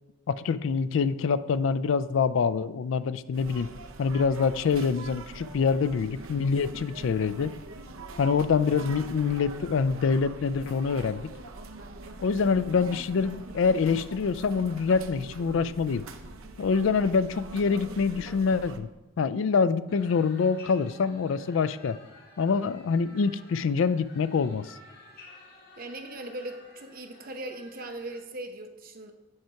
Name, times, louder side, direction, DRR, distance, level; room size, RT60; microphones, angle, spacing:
voice 1, 0.3-3.7 4.0-7.5 8.2-11.3 12.2-16.1 16.6-18.9 19.2-22.0 22.4-24.7, left 5 dB, 70° left, 15 dB, 0.3 m, -25 dB
sound 1, 3.3-18.8, right 3 dB, 80° right, 0.7 m, -43 dB
sound 2, 19.9-28.1, left 2 dB, 45° left, 1.9 m, -52 dB
voice 2, 25.8-29.1, right 1 dB, 45° right, 6 dB, 0.7 m, -39 dB
7.7 x 4.5 x 5.7 m, 1.1 s
head